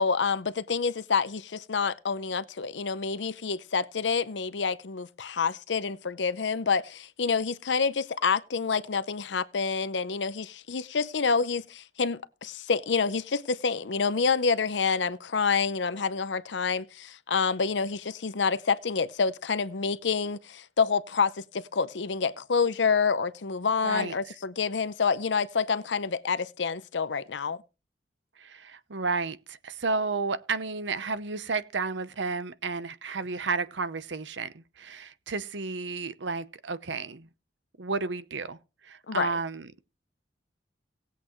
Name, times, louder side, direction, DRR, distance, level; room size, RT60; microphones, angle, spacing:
voice 1, 0.0-27.6 39.1-39.3, left 5 dB, 80° left, 0.7 m, -28 dB
voice 2, 23.8-24.2 28.4-37.3 37.8-38.6 38.8-39.7, right 4 dB, 85° right, 0.9 m, -32 dB
18.5 x 8.0 x 3.1 m
head